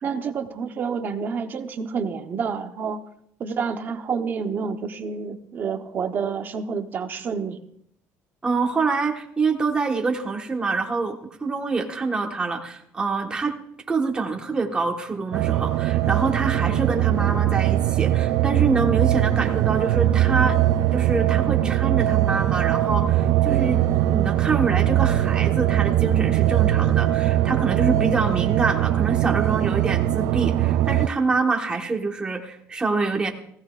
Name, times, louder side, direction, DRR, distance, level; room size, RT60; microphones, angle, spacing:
voice 1, 0.0-3.0 3.4-7.6, right 6 dB, 30° right, 7 dB, 0.9 m, -28 dB
voice 2, 8.4-13.6 13.9-20.6 20.9-33.3, right 4 dB, 15° right, 2 dB, 1.4 m, -26 dB
sound 1, 15.3-31.1, right 13 dB, 65° right, 0.4 m, -21 dB
19.0 x 16.5 x 2.5 m, 0.72 s
cardioid pair, 170°, 6 cm